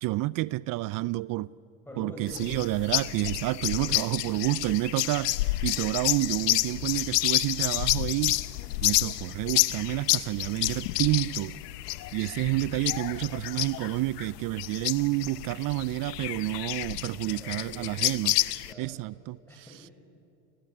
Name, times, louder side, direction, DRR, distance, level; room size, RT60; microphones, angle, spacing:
voice 1, 0.0-1.5 2.0-8.4 8.8-11.6 12.1-18.4 18.8-19.4, right 19 dB, 45° right, 0.5 m, -29 dB
voice 2, 1.9-2.5 3.7-4.4 6.4-6.8 17.2-17.9 18.6-19.1 19.5-19.9, right 1 dB, 5° left, 7.6 m, -46 dB
sound 1, 2.3-18.7, left 17 dB, 85° left, 0.9 m, -29 dB
28.5 x 20.5 x 8.6 m
hypercardioid pair, 90°, 47 cm